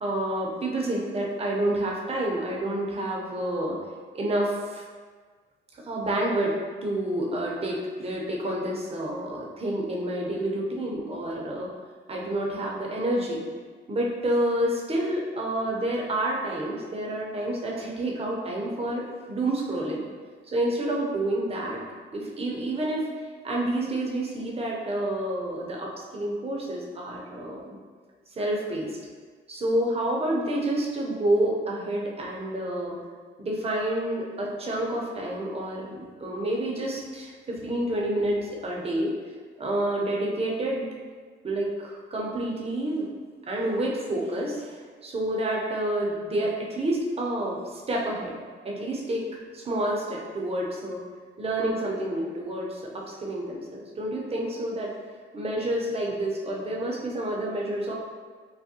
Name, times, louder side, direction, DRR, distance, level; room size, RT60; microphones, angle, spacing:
voice 1, 0.0-3.7 4.1-4.8 5.8-11.7 12.1-13.4 13.9-20.0 20.5-21.8 22.1-23.1 23.4-27.8 28.4-29.0 29.5-32.9 33.4-39.1 39.6-40.9 41.4-43.1 43.5-48.3 48.6-49.2 49.5-51.0 51.4-54.9 55.3-57.9, right 1 dB, 30° right, -2 dB, 0.6 m, -29 dB
3.4 x 2.1 x 2.7 m, 1.5 s
cardioid pair, 90°, 20 cm